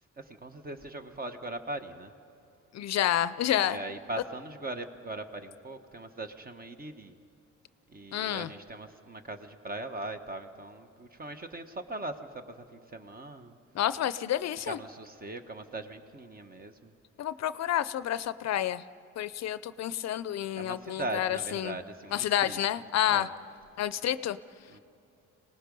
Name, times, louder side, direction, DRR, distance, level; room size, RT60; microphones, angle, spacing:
voice 1, 0.2-2.1 3.6-7.1 7.9-13.6 14.6-16.9 20.6-22.6 23.0-23.3 24.7-24.8, right 2 dB, 30° right, 8 dB, 1.2 m, -40 dB
voice 2, 2.7-3.8 8.1-8.5 13.7-14.8 17.2-18.8 19.2-21.8 22.1-23.3 23.8-24.4, left 11 dB, 60° left, 15 dB, 0.5 m, -29 dB
26.0 x 19.0 x 5.3 m, 2.7 s
cardioid pair, 90°, 30 cm